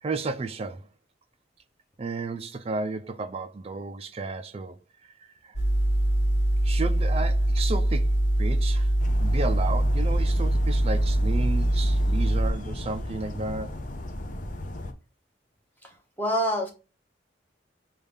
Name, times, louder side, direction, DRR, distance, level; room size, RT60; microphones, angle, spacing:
voice 1, 0.0-0.9 2.0-5.5 6.6-8.9 9.2-13.8, right 3 dB, 35° right, 0.3 m, -33 dB
sound 1, 5.6-12.5, right 1 dB, 90° left, 1.1 m, -23 dB
sound 2, 9.0-14.9, left 1 dB, 45° left, 0.6 m, -36 dB
voice 2, 15.8-16.7, equal, 10° left, 0.7 m, -27 dB
5.5 x 2.3 x 3.4 m
head